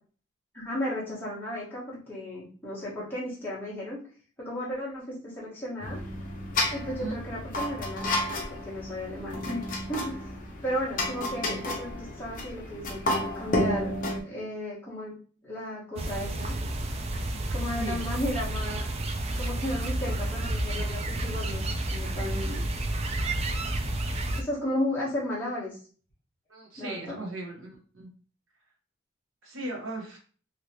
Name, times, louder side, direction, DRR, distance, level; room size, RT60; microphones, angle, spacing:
voice 1, 0.5-4.0 4.4-6.0 6.7-9.6 9.9-10.3 10.6-13.9 14.2-15.1 15.4-16.5 17.5-18.8 19.4-22.6 24.4-25.8 26.8-27.2, left 1 dB, 10° left, -8 dB, 1.2 m, -34 dB
sound 1, 5.8-14.2, left 1 dB, 40° left, 0.7 m, -31 dB
sound 2, 16.0-24.4, right 1 dB, 30° right, 0.3 m, -30 dB
voice 2, 26.5-28.1 29.4-30.2, right 2 dB, 80° right, -1 dB, 1.1 m, -37 dB
3.1 x 2.9 x 2.8 m, 0.41 s
head